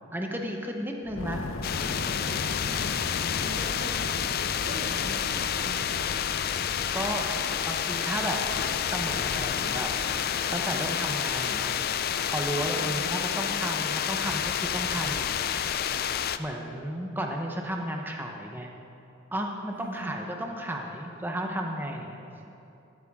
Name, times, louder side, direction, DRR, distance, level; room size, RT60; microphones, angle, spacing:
voice 1, 0.1-1.4 6.7-7.3 7.6-8.4 8.9-9.9 10.5-11.7 12.3-15.4 16.4-18.7 19.3-22.2, right 1 dB, 10° right, 1 dB, 0.8 m, -33 dB
Fire, 1.0-6.3, left 2 dB, 70° left, 0.8 m, -36 dB
sound 1, 1.6-16.4, left 9 dB, 45° left, 0.4 m, -29 dB
voice 2, 3.4-6.0 12.7-13.1 19.7-20.2, right 1 dB, 50° right, -2 dB, 2.1 m, -41 dB
13.5 x 12.5 x 3.7 m, 2.8 s
head